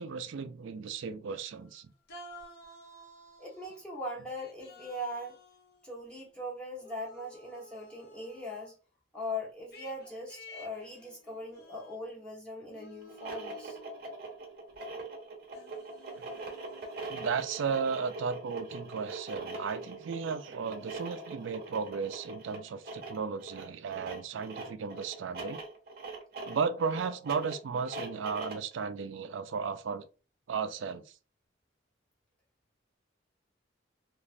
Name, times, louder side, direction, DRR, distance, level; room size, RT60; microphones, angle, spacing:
voice 1, 0.0-1.9 16.2-16.3 17.1-25.6 26.4-30.1 30.5-31.1, right 5 dB, 75° right, 0.4 m, -35 dB
sound 1, 1.4-1.8 2.1-3.8 4.4-6.3 6.8-8.7 9.7-12.3 12.7-14.2 14.7-14.8 15.5-17.1, equal, 55° left, 0.7 m, -53 dB
voice 2, 3.4-5.4 5.8-8.7 9.1-13.8, left 1 dB, 5° left, 0.9 m, -40 dB
sound 2, 13.0-28.7, right 3 dB, 55° right, 0.9 m, -42 dB
3.1 x 2.4 x 2.4 m
head